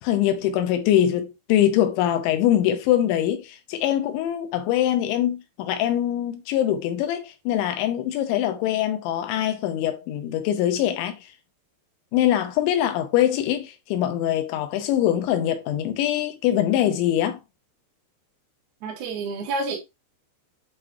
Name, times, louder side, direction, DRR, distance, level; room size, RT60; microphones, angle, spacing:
voice 1, 0.0-11.2 12.1-17.4, left 11 dB, 90° left, 3.2 m, -23 dB
voice 2, 18.8-19.8, right 3 dB, 55° right, 2.3 m, -29 dB
9.0 x 4.0 x 3.0 m
omnidirectional pair, 5.1 m